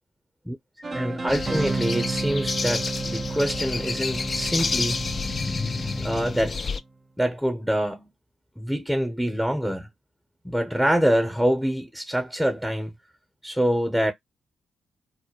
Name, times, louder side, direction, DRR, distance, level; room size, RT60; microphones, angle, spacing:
sound 1, 0.8-6.7, right 3 dB, 35° right, 0.5 m, -32 dB
voice 1, 0.9-5.0 6.0-6.6 7.2-8.1 8.6-9.9 10.4-12.9 13.4-14.1, equal, ahead, 0.7 m, -25 dB
sound 2, 1.3-6.8, left 4 dB, 45° left, 0.3 m, -30 dB
2.2 x 2.1 x 2.8 m
cardioid pair, 65°, 0 cm